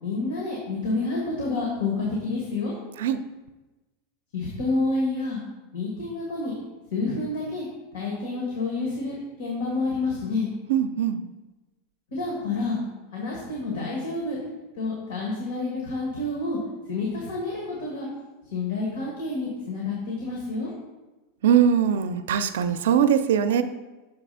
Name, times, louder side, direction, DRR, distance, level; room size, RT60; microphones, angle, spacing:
voice 1, 0.0-2.7 4.3-5.4 5.7-6.5 6.9-7.7 7.9-10.5 12.1-12.8 13.1-14.4 14.8-16.6 16.9-18.1 18.5-20.7, left 3 dB, 85° left, -3 dB, 1.6 m, -28 dB
voice 2, 10.7-11.2 21.4-23.6, right 8 dB, 90° right, 10 dB, 0.4 m, -21 dB
6.8 x 3.3 x 5.4 m, 1.1 s
supercardioid pair, 170°, 0 cm